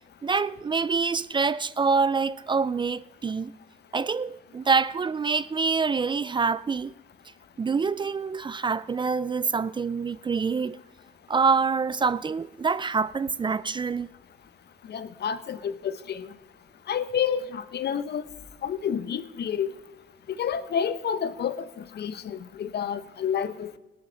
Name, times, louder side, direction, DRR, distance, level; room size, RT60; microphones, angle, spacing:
voice 1, 0.2-3.5 3.9-6.9 7.6-10.8 11.3-14.1, right 5 dB, 25° right, 0.3 m, -26 dB
voice 2, 14.9-16.3 16.9-18.2 18.6-19.7 20.4-23.8, left 8 dB, 55° left, 0.8 m, -29 dB
18.0 x 12.0 x 3.9 m
cardioid pair, 90°, 20 cm